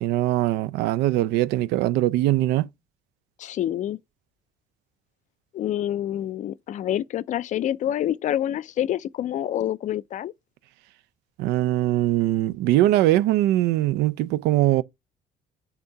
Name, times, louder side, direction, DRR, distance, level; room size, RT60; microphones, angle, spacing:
voice 1, 0.0-2.7 11.4-14.8, right 14 dB, 85° right, 0.4 m, -21 dB
voice 2, 3.4-4.0 5.5-10.3, left 11 dB, 50° left, 0.4 m, -27 dB
7.9 x 2.8 x 4.6 m
cardioid pair, 110°, 17 cm